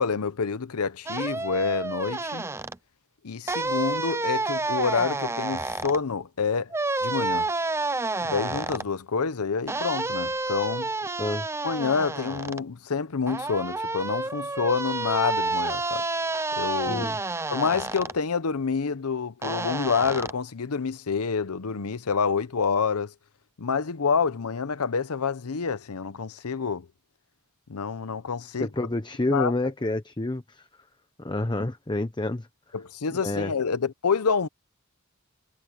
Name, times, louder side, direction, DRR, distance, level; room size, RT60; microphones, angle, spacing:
voice 1, 0.0-2.4 3.2-6.7 7.0-7.5 8.2-10.9 11.6-16.0 16.5-17.1 17.5-23.1 23.6-26.9 27.7-28.7 29.3-29.5 32.7-34.5, left 5 dB, 85° left, 0.8 m, -27 dB
sound 1, 1.1-2.8 3.5-6.0 6.7-8.9 9.7-12.6 13.3-18.1 19.4-20.3, right 3 dB, 10° right, 0.5 m, -29 dB
voice 2, 16.9-17.2 28.6-30.6 31.2-32.5 33.2-33.5, left 2 dB, 20° left, 0.9 m, -28 dB
head